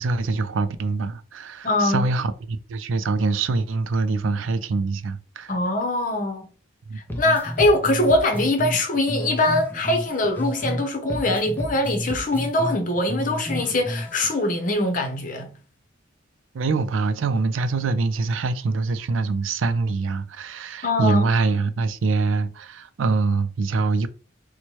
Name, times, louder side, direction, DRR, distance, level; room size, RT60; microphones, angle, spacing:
voice 1, 0.0-5.5 6.9-7.0 16.5-24.1, right 3 dB, 90° right, 0.4 m, -24 dB
voice 2, 1.6-2.1 5.5-6.5 7.2-15.5 20.8-21.3, left 1 dB, 45° left, 0.7 m, -22 dB
sound 1, 7.1-10.8 11.1-14.3, equal, 10° left, 0.4 m, -31 dB
4.4 x 2.1 x 3.0 m
head